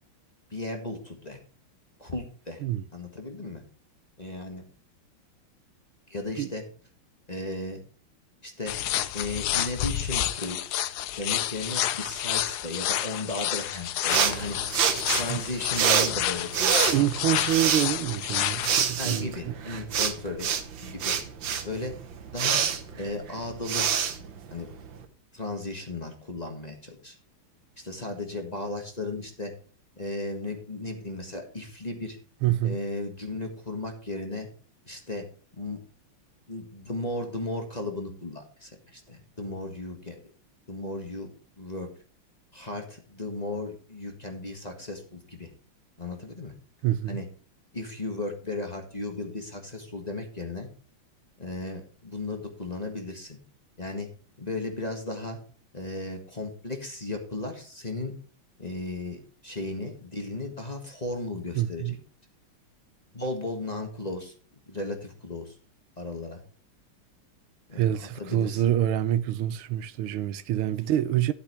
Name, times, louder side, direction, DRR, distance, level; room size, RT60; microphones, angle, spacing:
voice 1, 0.5-1.4 2.0-2.7 2.9-3.6 4.2-4.6 6.1-6.6 7.3-7.8 8.4-8.8 9.1-10.6 11.2-14.6 15.1-17.1 19.0-20.5 20.8-21.2 21.6-21.9 22.3-22.6 22.9-23.9 24.5-24.7 25.3-27.2 27.8-29.5 30.0-32.2 32.6-34.5 34.9-35.3 35.6-35.8 36.5-40.2 40.7-41.9 42.5-45.5 46.0-46.5 47.1-47.3 47.7-50.7 51.4-53.4 53.8-54.1 54.4-55.4 55.7-58.1 58.6-62.0 63.1-64.3 64.7-65.6 66.0-66.4 67.7-68.6, left 2 dB, 20° left, 1.6 m, -35 dB
sound 1, 8.7-18.8, left 12 dB, 75° left, 0.9 m, -30 dB
sound 2, 14.1-25.0, right 7 dB, 65° right, 1.8 m, -27 dB
voice 2, 16.9-19.5 32.4-32.8 46.8-47.2 61.5-62.0 67.7-71.3, right 12 dB, 80° right, 1.5 m, -26 dB
12.5 x 8.4 x 3.2 m
omnidirectional pair, 2.4 m